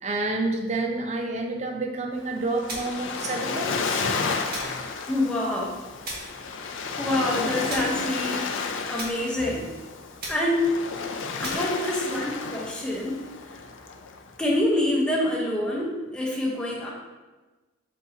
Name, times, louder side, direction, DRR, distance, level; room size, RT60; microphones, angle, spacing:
voice 1, 0.0-4.1 4.7-4.8, right 2 dB, 35° right, 4 dB, 0.6 m, -29 dB
Waves surf, 2.2-14.6, left 4 dB, 85° left, 0.6 m, -32 dB
sound 1, 2.7-3.1 4.5-4.9 6.0-6.4 7.7-8.1 9.0-9.3 10.2-10.6 11.4-11.8, right 1 dB, 50° right, 1.5 m, -37 dB
voice 2, 5.1-5.7 7.0-8.5 8.9-9.7 10.3-10.7 11.4-13.2 14.4-16.9, left 1 dB, 5° left, -4 dB, 1.0 m, -26 dB
6.2 x 5.5 x 2.8 m, 1.2 s
head